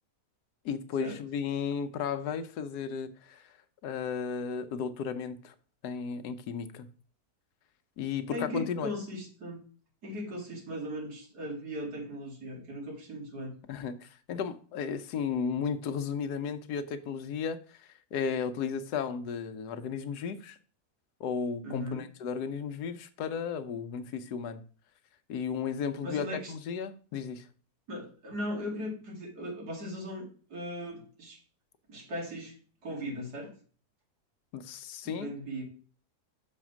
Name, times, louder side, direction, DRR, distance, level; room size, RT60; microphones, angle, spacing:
voice 1, 0.6-3.5 3.8-5.5 5.8-6.9 8.0-8.9 13.7-20.6 21.2-24.6 25.3-27.4 34.5-35.3, left 6 dB, 90° left, 1.3 m, -34 dB
voice 2, 8.3-9.6 10.0-13.5 21.6-22.1 26.0-26.5 27.9-31.4 31.9-32.5 32.8-33.5 35.0-35.6, equal, 85° right, 2.9 m, -38 dB
6.4 x 4.3 x 6.0 m
omnidirectional pair, 1.7 m